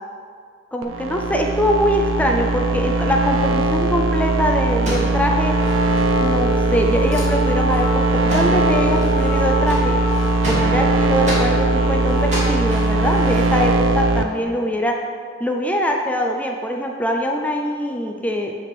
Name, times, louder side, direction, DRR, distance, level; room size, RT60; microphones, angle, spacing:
voice 1, 0.7-5.6 6.2-10.0 10.4-15.0 15.4-18.5, equal, 5° left, 2 dB, 0.4 m, -22 dB
sound 1, 0.8-14.2, right 2 dB, 80° right, 0.5 m, -20 dB
sound 2, 4.7-6.2 6.5-6.6 6.8-7.4 7.7-8.0 8.3-11.5 12.0-13.7, right 1 dB, 35° right, 2.1 m, -31 dB
Wind instrument woodwind instrument, 5.3-13.3, equal, 30° left, 0.8 m, -27 dB
9.0 x 3.4 x 6.0 m, 2.1 s
head